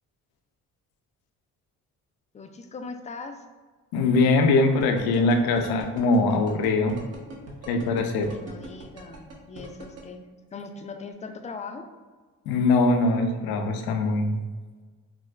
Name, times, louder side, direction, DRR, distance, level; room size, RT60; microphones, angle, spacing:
voice 1, 2.3-3.4 8.3-10.2 10.5-11.9, left 4 dB, 20° left, 6 dB, 0.3 m, -39 dB
voice 2, 3.9-7.0 7.7-8.3 12.5-14.4, left 3 dB, 75° left, 5 dB, 0.5 m, -22 dB
sound 1, 4.8-10.0, right 2 dB, 45° right, 0.9 m, -41 dB
4.5 x 2.0 x 2.3 m, 1.4 s
supercardioid pair, 55°, 37 cm